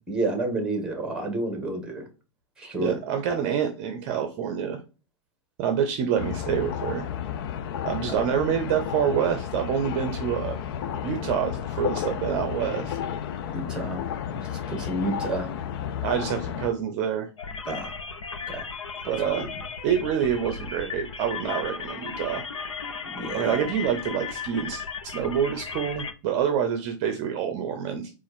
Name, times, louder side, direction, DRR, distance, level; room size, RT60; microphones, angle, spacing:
voice 1, 0.1-2.0 2.6-3.0 8.1-8.2 13.5-14.0 14.3-15.5 17.7-17.9 18.5-18.7 23.1-23.7, right 2 dB, 5° right, 1.4 m, -30 dB
voice 2, 2.8-4.8 5.6-7.1 7.8-10.6 11.0-13.0 16.0-17.3 19.0-19.5 19.8-22.4 23.3-28.1, right 8 dB, 40° right, 0.7 m, -27 dB
sound 1, 6.2-16.7, left 9 dB, 50° left, 0.5 m, -32 dB
sound 2, 17.4-26.1, left 5 dB, 85° left, 0.8 m, -36 dB
4.2 x 2.5 x 4.1 m
hypercardioid pair, 135°, 16 cm